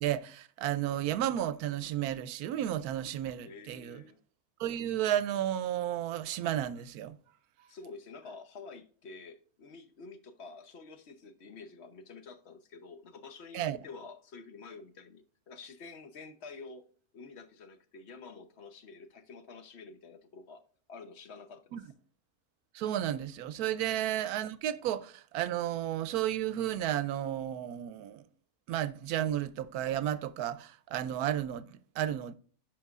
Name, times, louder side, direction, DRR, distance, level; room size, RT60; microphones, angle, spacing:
voice 1, 0.0-4.0 4.6-7.2 13.5-13.8 21.7-21.8 22.7-28.2 28.7-32.3, right 11 dB, 80° right, 1.1 m, -33 dB
voice 2, 3.4-4.2 7.7-16.8 17.1-20.6 20.9-21.7 23.9-24.0, left 4 dB, 50° left, 0.9 m, -49 dB
11.0 x 5.1 x 2.4 m
omnidirectional pair, 1.6 m